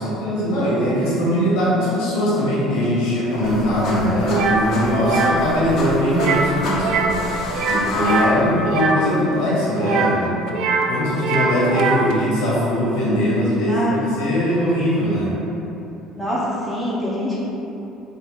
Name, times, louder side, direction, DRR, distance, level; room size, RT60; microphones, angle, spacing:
voice 1, 0.0-7.1 7.7-15.4, equal, 90° left, -7 dB, 1.4 m, -21 dB
sound 1, 3.3-8.8, left 1 dB, 60° left, 0.8 m, -29 dB
sound 2, 4.3-4.6 5.0-5.4 6.1-6.5 6.8-7.2 7.5-9.0 9.8-10.9 11.2-12.1, right 4 dB, 70° right, 0.3 m, -22 dB
voice 2, 16.2-17.4, equal, ahead, -9 dB, 1.0 m, -24 dB
4.8 x 2.1 x 3.8 m, 3.0 s
cardioid pair, 115°, 0 cm